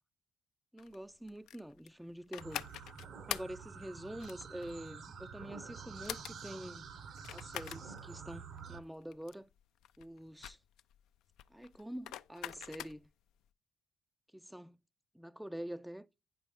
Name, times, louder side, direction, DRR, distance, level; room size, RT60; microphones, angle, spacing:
voice 1, 0.7-2.6 3.3-6.8 7.3-9.5 10.0-10.6 11.5-13.1 14.3-14.8 15.1-16.1, right 1 dB, 5° right, 0.3 m, -46 dB
sound 1, 0.8-13.3, left 12 dB, 90° left, 0.4 m, -45 dB
sound 2, 2.4-8.8, right 6 dB, 65° right, 0.9 m, -49 dB
9.0 x 5.5 x 3.5 m
cardioid pair, 90°, 0 cm